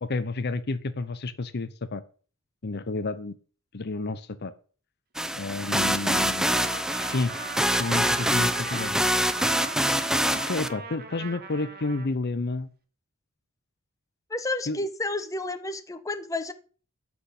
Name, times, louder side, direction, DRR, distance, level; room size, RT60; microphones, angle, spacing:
voice 1, 0.0-2.0 2.6-3.4 3.7-4.5 5.4-6.5 6.9-7.4 7.8-9.0 10.3-12.7 14.7-14.8, left 3 dB, 50° left, 14 dB, 0.7 m, -30 dB
sound 1, 5.2-10.7, equal, 5° right, 0.6 m, -25 dB
Trumpet, 5.6-12.1, right 4 dB, 45° right, 1.8 m, -40 dB
voice 2, 14.3-16.5, left 2 dB, 15° left, 9 dB, 1.0 m, -31 dB
11.0 x 6.2 x 8.4 m, 0.40 s
head